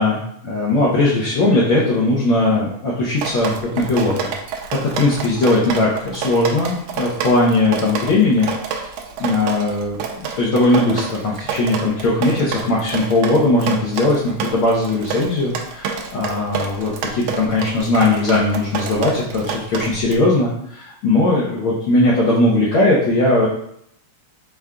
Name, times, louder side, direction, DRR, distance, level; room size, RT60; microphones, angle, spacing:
voice 1, 0.5-4.3 4.8-8.9 9.2-23.5, left 2 dB, 90° left, -5 dB, 1.1 m, -19 dB
Drip, 3.2-20.2, right 6 dB, 80° right, 1.5 m, -28 dB
5.1 x 2.2 x 3.5 m, 0.71 s
omnidirectional pair, 3.3 m